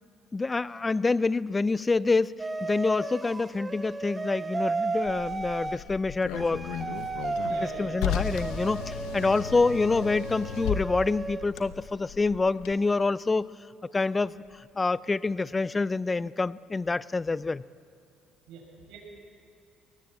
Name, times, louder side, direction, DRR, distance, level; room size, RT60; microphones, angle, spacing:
voice 1, 0.3-2.3 2.6-6.7 7.5-13.5 13.9-17.6, left 3 dB, 25° left, 19 dB, 0.5 m, -27 dB
sound 1, 2.4-5.8 6.4-11.5, right 3 dB, 25° right, 1.1 m, -34 dB
Car, 5.0-12.7, left 9 dB, 80° left, 1.0 m, -35 dB
voice 2, 7.4-8.0 18.5-19.0, right 4 dB, 75° right, 0 dB, 6.5 m, -44 dB
21.5 x 18.5 x 7.9 m, 2.4 s
supercardioid pair, 70°, 0 cm